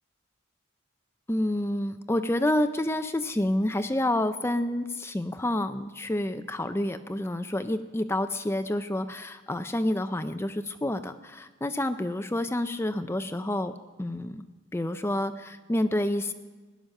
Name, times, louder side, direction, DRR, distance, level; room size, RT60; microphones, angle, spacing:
voice 1, 1.3-14.4 14.7-16.3, left 1 dB, 10° left, 10 dB, 0.5 m, -28 dB
17.5 x 10.5 x 6.5 m, 1.3 s
head